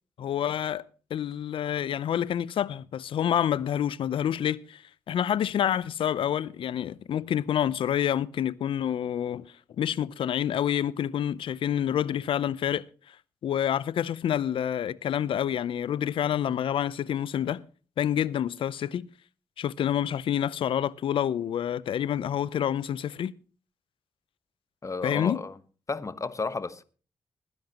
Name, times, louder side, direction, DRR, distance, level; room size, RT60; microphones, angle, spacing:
voice 1, 0.2-0.8 1.1-4.8 5.1-9.5 9.8-12.8 13.4-17.6 18.0-19.1 19.6-23.3 25.0-25.4, left 10 dB, 70° left, 0.6 m, -28 dB
voice 2, 24.8-25.6 25.9-26.8, left 4 dB, 35° left, 1.2 m, -32 dB
20.5 x 10.5 x 3.0 m
supercardioid pair, 45°, 9 cm